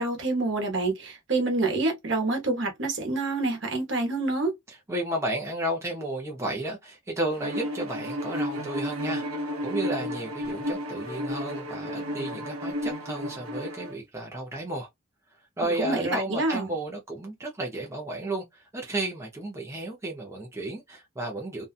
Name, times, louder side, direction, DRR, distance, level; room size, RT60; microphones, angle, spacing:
voice 1, 0.0-4.5 15.8-16.7, right 2 dB, 60° right, 1.0 m, -27 dB
voice 2, 4.7-9.2 9.6-14.9 15.6-21.7, right 1 dB, 15° right, 0.6 m, -33 dB
Bowed string instrument, 7.4-14.0, equal, 85° right, 0.8 m, -32 dB
2.7 x 2.3 x 2.3 m
head